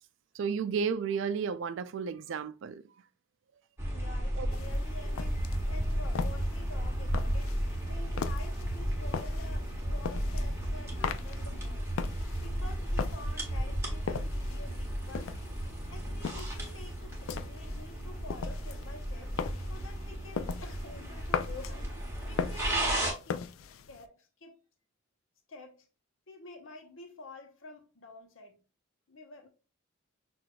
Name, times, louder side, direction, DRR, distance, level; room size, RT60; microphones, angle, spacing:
voice 1, 0.3-2.9 4.4-4.5, right 6 dB, 65° right, 0.4 m, -32 dB
sound 1, 3.8-23.1, equal, 15° right, 1.2 m, -34 dB
voice 2, 3.9-7.6 7.8-11.9 12.4-15.3 15.9-19.3 19.7-21.9 22.3-23.4 23.8-24.6 25.5-25.9 26.3-28.6 29.1-29.5, left 2 dB, 75° left, 0.9 m, -49 dB
sound 2, 4.5-24.1, left 6 dB, 90° left, 0.4 m, -40 dB
5.7 x 2.5 x 2.2 m
head